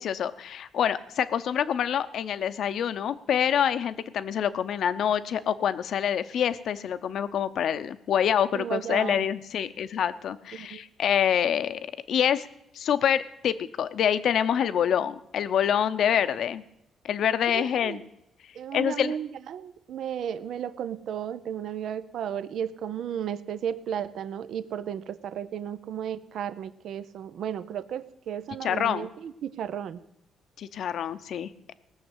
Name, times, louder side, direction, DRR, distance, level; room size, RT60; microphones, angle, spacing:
voice 1, 0.0-12.5 12.7-16.6 17.0-18.0 18.7-19.1 28.6-29.1 30.6-31.7, left 9 dB, 70° left, 12 dB, 0.7 m, -26 dB
voice 2, 8.5-9.3 10.5-10.8 17.5-18.0 18.5-30.0, right 9 dB, 70° right, 15 dB, 0.6 m, -34 dB
18.5 x 6.5 x 8.1 m, 0.83 s
cardioid pair, 90°, 0 cm